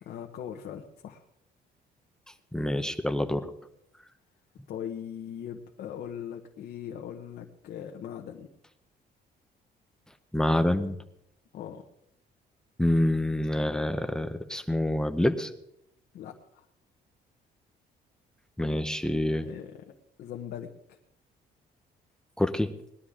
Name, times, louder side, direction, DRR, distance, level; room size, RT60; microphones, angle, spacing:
voice 1, 0.0-1.2 4.7-8.5 11.5-11.9 16.1-16.6 19.4-19.8 20.2-21.0, left 9 dB, 65° left, 2 dB, 1.1 m, -40 dB
voice 2, 2.5-3.5 10.3-11.0 12.8-15.5 18.6-19.5 22.4-22.7, left 1 dB, 5° left, 8 dB, 0.7 m, -26 dB
20.0 x 11.5 x 3.7 m, 0.79 s
cardioid pair, 150°, 17 cm